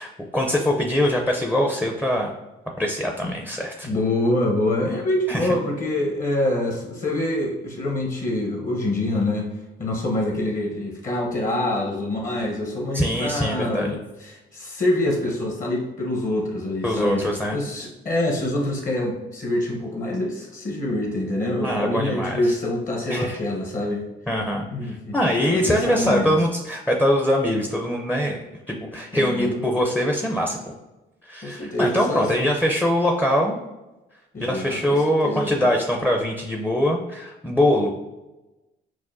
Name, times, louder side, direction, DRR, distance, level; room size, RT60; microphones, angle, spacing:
voice 1, 0.0-2.3 2.8-3.9 5.3-5.5 12.9-14.0 16.8-17.6 21.6-22.5 23.1-23.4 24.3-28.4 28.7-30.7 31.2-33.6 34.4-38.0, equal, 5° left, 1 dB, 0.5 m, -23 dB
voice 2, 3.8-9.5 9.8-17.2 17.5-24.0 24.7-25.2 25.5-26.3 29.1-29.6 31.4-32.3 34.3-35.5, left 1 dB, 40° left, 0 dB, 1.0 m, -25 dB
6.0 x 2.2 x 2.6 m, 1.0 s
cardioid pair, 90°, 20 cm